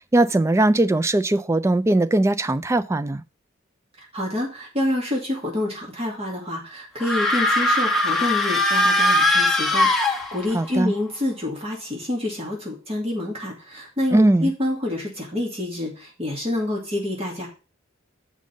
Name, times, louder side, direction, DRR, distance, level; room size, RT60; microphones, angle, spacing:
voice 1, 0.1-3.2 10.5-10.9 14.1-14.5, right 2 dB, 15° right, 0.3 m, -19 dB
voice 2, 4.0-17.5, left 1 dB, 30° right, 2.3 m, -27 dB
sound 1, 7.0-10.7, left 1 dB, ahead, 1.2 m, -20 dB
7.5 x 5.4 x 5.1 m
head